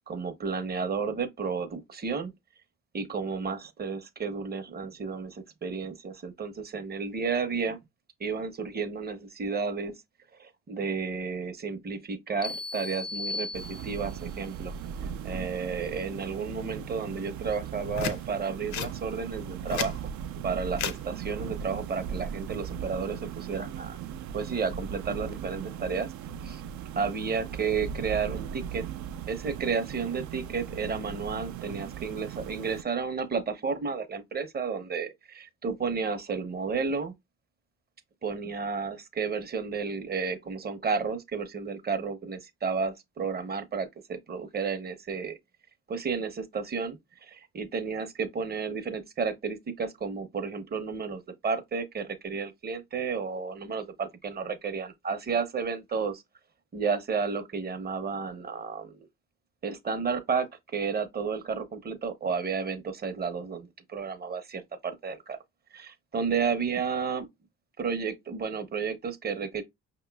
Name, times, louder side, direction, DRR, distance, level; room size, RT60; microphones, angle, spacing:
voice 1, 0.1-2.3 2.9-7.8 8.2-9.9 10.4-14.7 15.2-20.0 20.4-24.0 24.3-26.1 26.4-26.6 27.0-28.8 29.3-37.1 38.2-45.4 45.9-47.0 47.2-56.2 56.7-59.1 59.6-60.5 60.7-65.4 65.7-67.3 67.8-69.6, right 5 dB, 30° right, 0.7 m, -32 dB
sound 1, 12.4-14.3, left 3 dB, 20° left, 0.4 m, -36 dB
sound 2, 13.5-32.8, right 8 dB, 65° right, 0.5 m, -38 dB
sound 3, 17.9-18.2 18.7-18.9 19.5-20.0 20.7-21.0 22.3-22.6, left 7 dB, 65° left, 0.7 m, -32 dB
5.3 x 2.9 x 2.2 m
cardioid pair, 90°, 30 cm